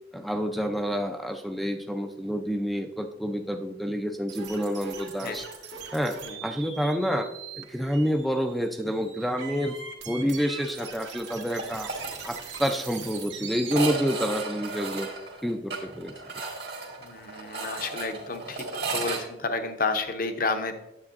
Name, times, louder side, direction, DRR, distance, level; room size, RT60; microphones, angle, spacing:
voice 1, 0.1-5.4 5.9-7.3 7.6-9.8 10.1-11.9 12.2-15.1 15.4-16.1, equal, ahead, 6 dB, 0.4 m, -28 dB
sound 1, 4.3-13.8, right 6 dB, 85° right, 1.4 m, -41 dB
sound 2, 11.6-12.1 12.4-12.5 12.8-12.9 13.6-19.2, right 4 dB, 60° right, 1.5 m, -34 dB
voice 2, 17.0-18.6 18.9-20.7, left 3 dB, 50° left, 7 dB, 0.7 m, -30 dB
9.6 x 7.8 x 2.5 m, 0.90 s
head